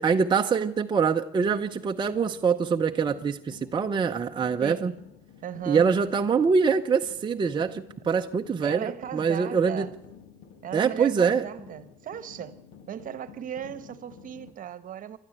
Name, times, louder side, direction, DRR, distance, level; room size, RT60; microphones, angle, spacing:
voice 1, 0.0-4.9 5.7-9.9 10.7-11.5, right 6 dB, 25° right, 0.7 m, -24 dB
sound 1, 1.3-14.5, left 7 dB, 90° left, 2.3 m, -51 dB
voice 2, 4.6-5.0 5.4-6.0 8.6-9.9 10.6-12.6 12.9-15.2, right 9 dB, 55° right, 1.2 m, -37 dB
27.5 x 12.5 x 8.1 m
cardioid pair, 110°, 17 cm